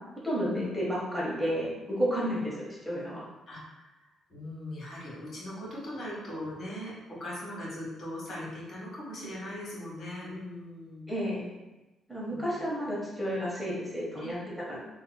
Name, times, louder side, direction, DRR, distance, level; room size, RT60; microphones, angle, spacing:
voice 1, 0.2-3.3 11.1-11.5 12.1-14.8, equal, 5° right, -6 dB, 0.9 m, -31 dB
voice 2, 3.5-4.0 4.3-11.1 12.3-12.6 14.2-14.3, left 1 dB, 55° left, -6 dB, 1.4 m, -40 dB
3.6 x 2.4 x 2.2 m, 1.1 s
cardioid pair, 90°, 0 cm